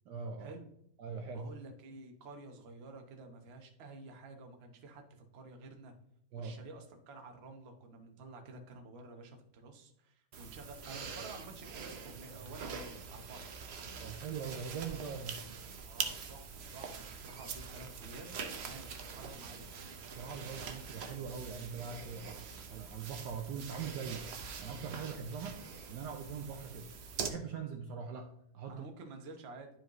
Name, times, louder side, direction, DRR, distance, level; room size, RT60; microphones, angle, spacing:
voice 1, 0.1-0.6 1.0-1.5 6.3-6.6 14.0-15.4 20.1-24.3 24.6-25.6 25.9-26.9 27.2-28.9, right 6 dB, 70° right, 5 dB, 1.1 m, -42 dB
voice 2, 1.3-5.9 6.3-13.6 15.8-19.7 28.7-29.7, right 3 dB, 45° right, 4 dB, 0.9 m, -51 dB
sound 1, 10.3-27.3, right 6 dB, 85° right, 0.5 m, -44 dB
10.5 x 4.8 x 3.0 m, 0.75 s
omnidirectional pair, 2.2 m